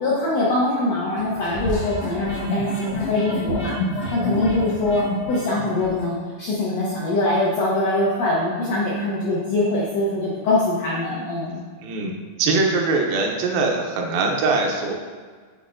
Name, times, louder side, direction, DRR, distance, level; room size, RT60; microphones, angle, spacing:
voice 1, 0.0-3.8 4.1-11.6, left 2 dB, 75° left, -6 dB, 1.5 m, -23 dB
sound 1, 1.2-6.1, equal, 60° left, 1.8 m, -29 dB
voice 2, 11.8-12.1 12.4-14.9, right 3 dB, 80° right, 1 dB, 2.3 m, -22 dB
8.1 x 5.1 x 2.5 m, 1.5 s
omnidirectional pair, 4.3 m